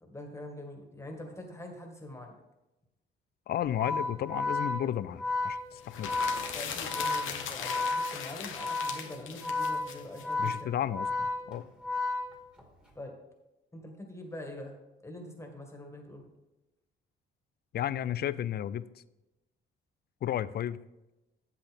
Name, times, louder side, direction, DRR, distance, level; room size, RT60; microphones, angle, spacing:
voice 1, 0.0-2.4 6.5-10.8 12.9-13.2 13.7-14.8 15.0-16.3, left 1 dB, 15° left, 2 dB, 2.0 m, -44 dB
voice 2, 3.5-6.1 10.4-11.7 17.7-18.9 20.2-20.8, left 11 dB, 55° left, 17 dB, 0.4 m, -33 dB
Organ, 3.7-12.8, left 3 dB, 5° right, 2.1 m, -33 dB
sound 1, 5.8-10.5, left 7 dB, 80° left, 1.1 m, -39 dB
8.3 x 8.2 x 3.6 m, 0.98 s
cardioid pair, 90°, 20 cm